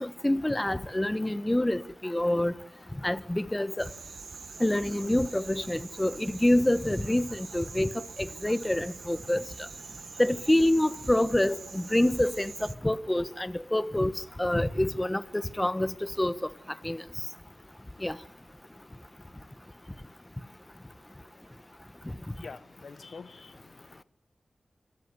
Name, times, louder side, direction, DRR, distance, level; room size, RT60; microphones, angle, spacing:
voice 1, 0.0-2.5 3.0-3.9 4.6-7.9 8.2-9.4 10.2-14.1 14.4-16.3 16.8-17.0 18.0-18.2, left 1 dB, 15° left, 1.3 m, -26 dB
sound 1, 3.8-12.8, right 5 dB, 80° right, 0.9 m, -45 dB
voice 2, 22.4-24.0, left 4 dB, 70° left, 0.8 m, -46 dB
26.0 x 14.0 x 9.7 m
wide cardioid pair, 75°, 0 cm